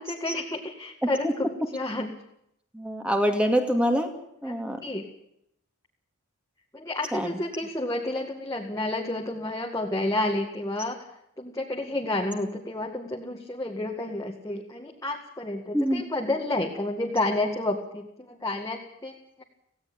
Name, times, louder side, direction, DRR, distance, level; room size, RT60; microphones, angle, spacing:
voice 1, 0.0-2.1 4.4-5.1 6.7-11.0 11.4-19.1, left 2 dB, 15° left, 0 dB, 2.0 m, -30 dB
voice 2, 2.7-4.1 4.4-4.8 7.1-7.4 15.7-16.0, equal, 5° right, 5 dB, 2.4 m, -25 dB
18.0 x 16.5 x 8.8 m, 0.75 s
head